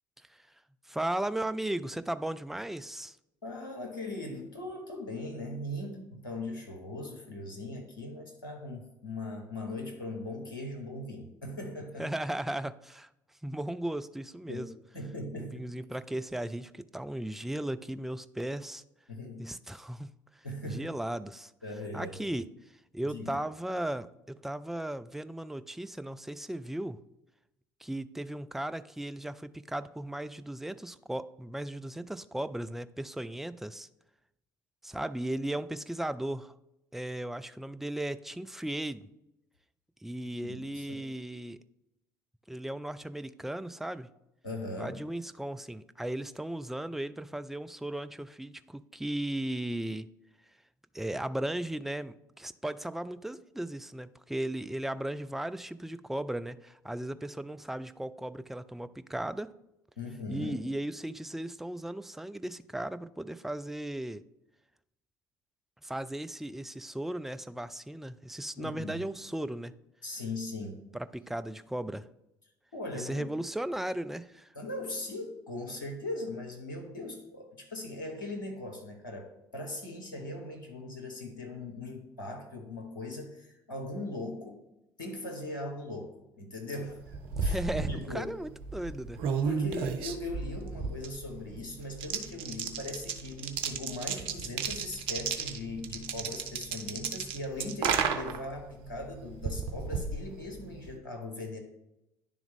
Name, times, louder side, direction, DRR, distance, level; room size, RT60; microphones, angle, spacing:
voice 1, 0.9-3.2 12.0-13.1 13.4-14.7 15.4-18.8 19.4-20.1 20.4-21.5 21.9-22.5 22.9-27.0 27.8-33.9 34.8-36.6 36.9-39.1 40.0-41.6 42.5-44.1 44.8-50.1 50.9-59.5 60.3-64.2 65.8-69.7 70.9-72.1 72.9-74.5 87.3-89.2, right 1 dB, 5° right, 12 dB, 0.3 m, -36 dB
voice 2, 3.4-12.1 14.5-14.7 14.9-15.7 19.1-19.4 19.7-19.8 20.4-20.9 21.6-22.2 23.0-23.4 40.4-41.0 44.4-45.0 60.0-60.6 68.6-69.0 70.0-70.8 72.7-73.3 74.5-84.6 85.0-87.6 87.9-88.3 89.4-101.6, left 2 dB, 80° left, 2 dB, 0.9 m, -39 dB
sound 1, 86.9-101.0, right 6 dB, 55° right, 0.6 m, -34 dB
10.0 x 3.5 x 3.6 m, 0.88 s
figure-of-eight pair, 55°, 11 cm